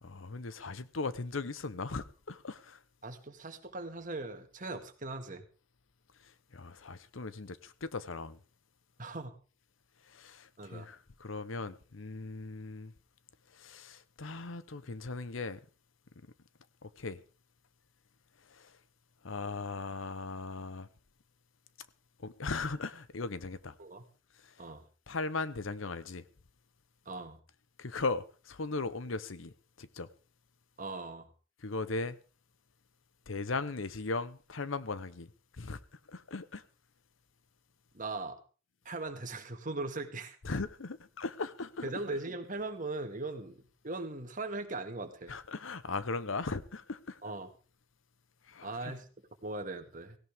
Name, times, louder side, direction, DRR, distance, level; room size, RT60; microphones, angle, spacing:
voice 1, 0.0-2.8 6.2-8.4 10.0-12.9 13.5-15.6 16.8-17.2 18.4-18.8 19.2-20.9 22.2-23.8 24.4-24.7 25.1-26.3 27.8-30.1 31.6-32.2 33.3-36.6 40.4-42.0 45.3-47.2 48.5-48.9, left 3 dB, 80° left, 0.9 m, -38 dB
voice 2, 3.0-5.4 9.0-9.4 10.6-10.9 23.8-24.0 24.6-24.8 27.1-27.4 30.8-31.3 37.9-38.4 38.9-40.4 41.8-45.3 47.2-47.5 48.6-49.1 49.4-50.2, right 2 dB, 40° right, 1.9 m, -39 dB
17.0 x 17.0 x 3.6 m
head